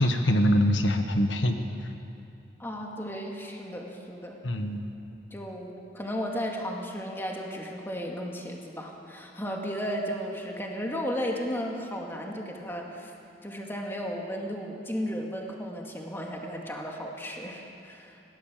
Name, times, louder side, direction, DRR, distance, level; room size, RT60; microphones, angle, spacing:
voice 1, 0.0-1.5 4.4-4.9, equal, 90° left, 6 dB, 1.4 m, -24 dB
voice 2, 2.6-4.4 5.3-13.1 13.4-18.1, equal, 10° left, 0 dB, 2.2 m, -34 dB
22.0 x 17.0 x 7.5 m, 2.6 s
head